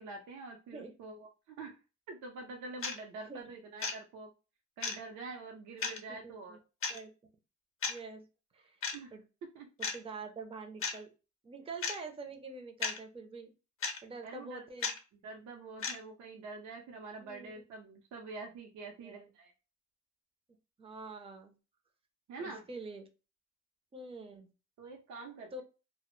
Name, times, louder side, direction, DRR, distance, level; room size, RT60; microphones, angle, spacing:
voice 1, 0.0-1.8 2.1-4.3 4.8-6.6 8.9-9.1 9.5-9.7 14.2-14.6 15.2-19.5 22.3-22.6 24.8-25.6, right 3 dB, 70° right, 2 dB, 0.6 m, -46 dB
sound 1, 2.8-3.0 3.8-4.0 4.8-5.0 5.8-6.0 6.8-7.0 7.8-8.0 8.8-9.0 9.8-10.0 10.8-11.0 11.8-12.0 12.8-13.0 13.8-14.0 14.8-15.0 15.8-16.0, left 5 dB, 45° left, 0.6 m, -34 dB
voice 2, 6.2-6.6 6.9-7.1 7.9-8.3 8.5-8.8 9.1-9.2 9.8-11.1 11.4-13.5 14.0-14.9 17.2-17.5 19.0-19.3 20.8-21.5 22.4-23.1 23.9-24.5 25.5-25.6, right 3 dB, 20° right, 4 dB, 0.5 m, -46 dB
2.0 x 2.0 x 3.0 m, 0.31 s
cardioid pair, 90°, 30 cm